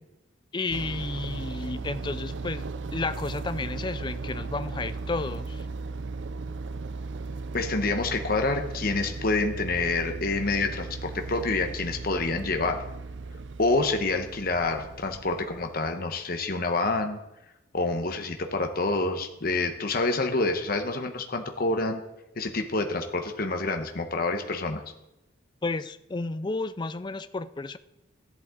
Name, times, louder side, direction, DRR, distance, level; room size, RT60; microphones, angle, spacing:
voice 1, 0.5-2.6 2.9-5.6 25.6-27.8, left 3 dB, 25° left, 13 dB, 0.4 m, -32 dB
sound 1, 0.7-15.8, right 3 dB, 70° right, 0.5 m, -36 dB
voice 2, 7.5-12.8 13.6-17.2 17.7-22.0 22.4-24.8, left 3 dB, 50° left, 5 dB, 1.1 m, -27 dB
13.5 x 11.0 x 3.8 m, 0.94 s
head